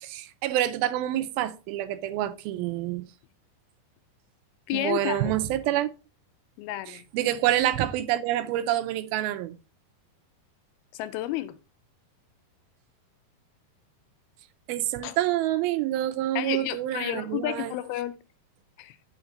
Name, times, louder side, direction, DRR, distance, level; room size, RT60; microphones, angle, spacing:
voice 1, 0.0-3.0 4.7-5.9 6.9-9.6 14.7-17.7, right 13 dB, 85° right, 2.5 m, -27 dB
voice 2, 4.7-5.3 6.6-7.0 10.9-11.5 15.0-15.2 16.4-18.1 18.8-19.0, left 14 dB, 90° left, 2.5 m, -31 dB
7.1 x 5.9 x 3.9 m
omnidirectional pair, 4.3 m